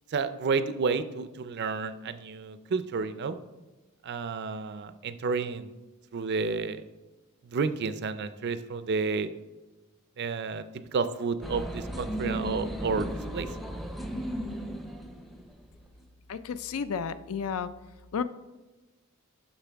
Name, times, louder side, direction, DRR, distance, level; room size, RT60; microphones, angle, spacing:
voice 1, 0.1-3.4 4.0-5.7 6.1-6.8 7.4-9.3 10.2-10.6 10.9-13.5, right 4 dB, 50° right, 12 dB, 0.4 m, -30 dB
sound 1, 11.4-15.9, right 1 dB, ahead, 0.5 m, -35 dB
voice 2, 16.3-17.7 18.1-18.2, left 6 dB, 70° left, 13 dB, 0.4 m, -32 dB
9.9 x 6.3 x 3.4 m, 1.1 s
head